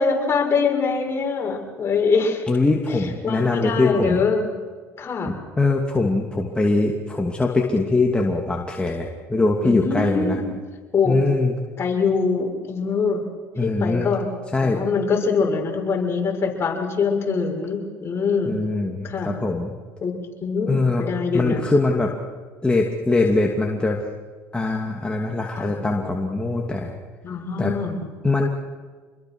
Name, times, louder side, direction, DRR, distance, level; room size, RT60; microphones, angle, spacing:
voice 1, 0.0-2.5 2.9-4.5 5.0-5.3 9.6-10.5 10.9-11.2 11.8-13.2 13.6-14.3 14.6-18.6 19.0-19.3 20.0-20.1 20.4-21.7 25.5-25.7 27.2-28.1, left 5 dB, 35° left, 1 dB, 6.7 m, -23 dB
voice 2, 2.5-4.2 5.6-10.4 11.1-11.5 13.6-14.1 14.5-14.8 18.4-19.8 20.7-21.0 21.3-22.1 22.6-24.0 24.5-26.9 27.6-27.7 28.2-28.5, left 3 dB, 15° left, 0 dB, 2.7 m, -22 dB
27.0 x 21.5 x 6.4 m, 1.5 s
supercardioid pair, 80°, 7 cm